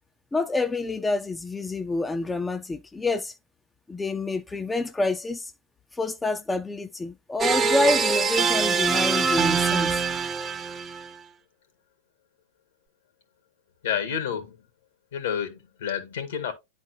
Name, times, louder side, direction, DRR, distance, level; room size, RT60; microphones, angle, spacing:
voice 1, 0.3-3.3 3.9-5.5 6.0-10.0, left 2 dB, 10° left, 0.5 m, -27 dB
sound 1, 7.4-11.1, right 5 dB, 20° right, 0.7 m, -24 dB
voice 2, 13.8-14.6 15.1-16.5, left 8 dB, 75° left, 2.0 m, -29 dB
10.5 x 4.1 x 2.8 m
hypercardioid pair, 105°, 0 cm